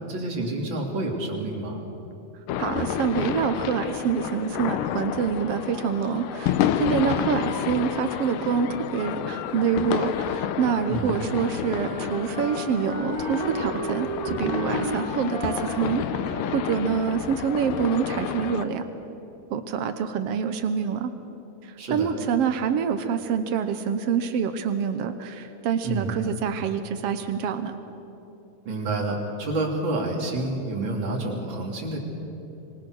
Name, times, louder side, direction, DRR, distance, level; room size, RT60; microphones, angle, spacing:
voice 1, 0.1-1.8 10.9-11.1 21.8-22.2 25.8-26.2 28.6-32.0, right 2 dB, 35° right, 0 dB, 3.3 m, -28 dB
sound 1, 2.5-18.7, left 9 dB, 75° left, 2.3 m, -30 dB
voice 2, 2.6-16.0 16.5-18.9 19.5-21.1 21.6-27.7, right 7 dB, 80° right, 9 dB, 1.3 m, -26 dB
Wind instrument woodwind instrument, 11.5-17.0, right 1 dB, 35° left, 6.0 m, -34 dB
25.5 x 21.5 x 6.5 m, 3.0 s
omnidirectional pair, 4.1 m